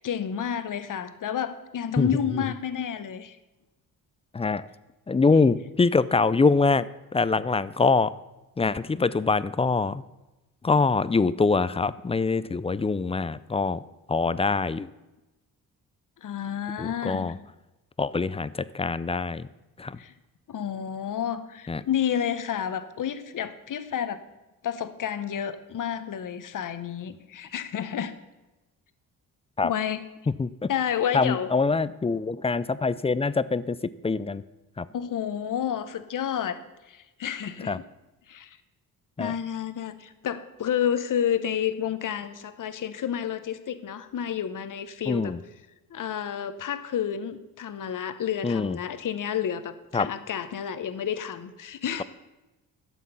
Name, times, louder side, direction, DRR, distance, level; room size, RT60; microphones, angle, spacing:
voice 1, 0.0-3.4 16.2-17.3 20.0-20.1 20.5-24.2 24.6-28.1 29.6-30.0 30.7-31.5 34.9-36.6 36.8-37.8 38.3-38.6 39.2-45.3 45.9-52.0, left 9 dB, 55° left, 12 dB, 1.0 m, -30 dB
voice 2, 4.3-4.7 5.1-6.9 7.1-8.1 8.6-10.0 10.6-13.8 14.1-14.9 16.8-17.3 18.0-19.5 19.8-20.0 21.7-21.8 29.6-29.7 30.4-30.7 31.1-34.4 34.8-34.9 37.7-37.8 39.2-39.4 45.1-45.4 48.4-48.8 49.9-50.1, left 4 dB, 15° left, 17 dB, 0.4 m, -24 dB
12.0 x 7.4 x 5.6 m, 1.0 s
cardioid pair, 70°, 39 cm